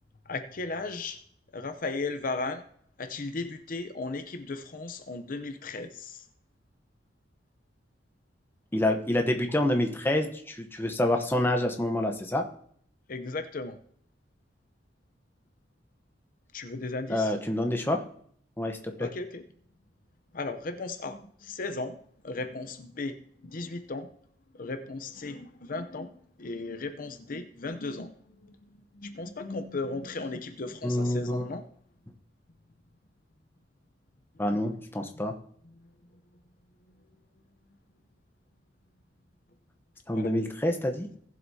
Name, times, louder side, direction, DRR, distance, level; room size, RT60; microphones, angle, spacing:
voice 1, 0.3-1.2 1.5-2.6 3.0-6.2 13.1-13.8 16.5-17.3 19.0-19.4 20.3-22.0 22.2-23.2 23.4-24.1 24.6-28.1 28.4-31.7 35.0-35.1 40.1-40.3, left 3 dB, 50° left, 8 dB, 0.7 m, -36 dB
voice 2, 8.7-12.4 17.1-18.0 18.6-19.1 30.8-31.5 34.4-35.3 40.1-41.1, left 1 dB, 10° left, 4 dB, 0.9 m, -27 dB
19.0 x 7.6 x 2.8 m, 0.62 s
head